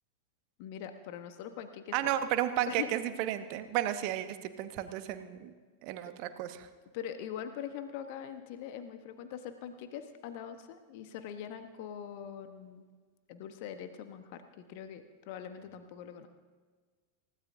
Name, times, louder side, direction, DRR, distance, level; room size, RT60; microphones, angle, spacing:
voice 1, 0.6-1.9 2.7-2.9 6.9-12.9 13.3-16.3, left 9 dB, 50° left, 8 dB, 1.2 m, -42 dB
voice 2, 1.9-5.5 5.8-6.7, right 12 dB, 45° right, 10 dB, 1.0 m, -33 dB
28.5 x 16.5 x 2.7 m, 1.5 s
figure-of-eight pair, 90°, 0 cm